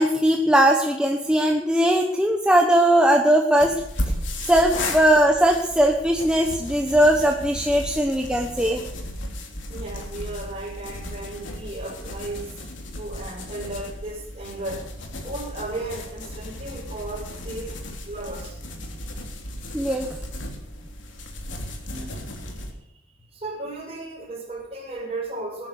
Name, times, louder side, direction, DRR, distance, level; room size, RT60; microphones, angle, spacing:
voice 1, 0.0-3.7 4.5-8.8 19.7-20.1 21.9-22.1, right 1 dB, 5° right, 2 dB, 1.1 m, -19 dB
sound 1, 3.6-22.7, left 1 dB, 65° left, 3.4 m, -35 dB
voice 2, 9.7-12.5 12.9-14.8 15.2-17.8 18.0-18.6 23.3-25.7, right 2 dB, 30° right, -1 dB, 6.4 m, -35 dB
19.5 x 10.5 x 6.6 m, 0.83 s
head